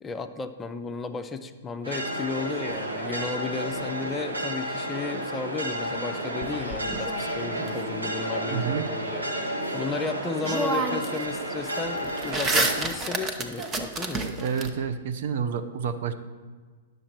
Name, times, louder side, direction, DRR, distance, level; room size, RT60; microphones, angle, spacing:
voice 1, 0.0-9.2 9.7-14.3, left 4 dB, 15° left, 8 dB, 0.5 m, -34 dB
sound 1, 1.8-12.8, right 1 dB, 90° right, 1.3 m, -31 dB
sound 2, 6.4-7.7 9.9-10.0 10.4-11.2 11.5-14.7, right 2 dB, 20° right, 0.9 m, -29 dB
voice 2, 8.5-8.8 14.2-16.1, right 7 dB, 55° right, 9 dB, 0.6 m, -29 dB
9.9 x 6.6 x 4.4 m, 1.5 s
figure-of-eight pair, 110°, 0 cm